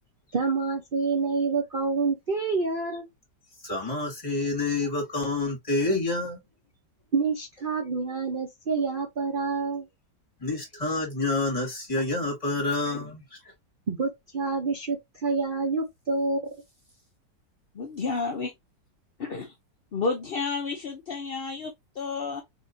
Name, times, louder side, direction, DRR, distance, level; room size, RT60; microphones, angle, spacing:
voice 1, 0.3-3.1 7.1-9.9 13.9-16.4, right 4 dB, 40° right, 0.8 m, -27 dB
voice 2, 3.6-6.4 10.4-13.2, left 2 dB, 20° left, 2.4 m, -28 dB
voice 3, 17.7-18.5 19.2-19.5 19.9-22.4, left 4 dB, 60° left, 0.6 m, -31 dB
4.3 x 3.7 x 2.7 m
omnidirectional pair, 1.9 m